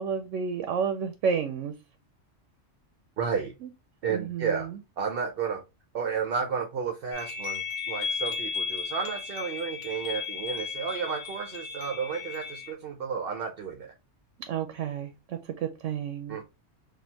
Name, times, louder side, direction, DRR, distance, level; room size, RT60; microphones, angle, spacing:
voice 1, 0.0-1.7 3.6-3.7 4.1-4.8 14.5-16.4, right 6 dB, 85° right, 0.9 m, -31 dB
voice 2, 3.2-3.5 4.0-4.7 5.0-5.6 5.9-13.9 16.3-16.4, right 6 dB, 55° right, 0.8 m, -32 dB
sound 1, 7.1-12.7, left 5 dB, 85° left, 1.2 m, -35 dB
4.3 x 2.7 x 2.8 m
omnidirectional pair, 1.2 m